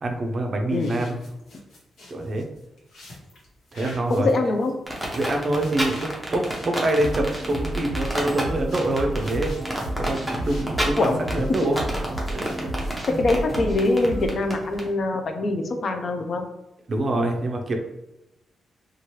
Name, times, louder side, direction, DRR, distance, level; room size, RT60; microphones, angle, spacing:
voice 1, 0.0-1.2 2.1-2.4 3.7-4.3 5.1-11.8 12.3-12.7 13.1-13.2 16.9-17.7, right 1 dB, 35° right, 3 dB, 0.4 m, -26 dB
sound 1, 0.7-10.1 10.4-13.2, left 1 dB, 85° left, 1.0 m, -45 dB
voice 2, 4.1-4.7 11.0-11.2 13.2-16.5, left 2 dB, 40° left, 5 dB, 0.3 m, -23 dB
sound 2, 4.9-14.8, equal, ahead, 0.6 m, -30 dB
sound 3, 7.0-14.3, right 1 dB, 15° right, 1.0 m, -31 dB
2.9 x 2.3 x 3.0 m, 0.92 s
wide cardioid pair, 165°, 0 cm